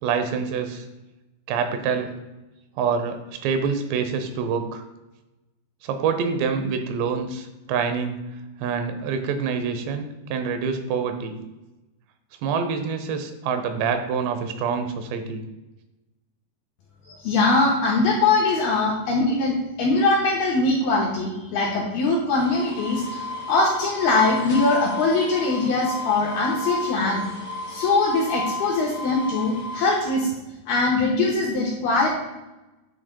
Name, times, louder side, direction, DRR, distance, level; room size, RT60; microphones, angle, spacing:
voice 1, 0.0-0.9 1.5-2.2 2.8-4.8 5.8-8.3 8.6-11.4 12.4-15.4, right 6 dB, 80° right, 7 dB, 2.8 m, -26 dB
voice 2, 17.1-27.2 27.7-30.3 30.7-32.1, left 3 dB, 75° left, -3 dB, 2.5 m, -22 dB
sound 1, 22.3-30.2, left 2 dB, 35° left, 2.2 m, -33 dB
9.8 x 7.8 x 2.2 m, 1.0 s
omnidirectional pair, 5.2 m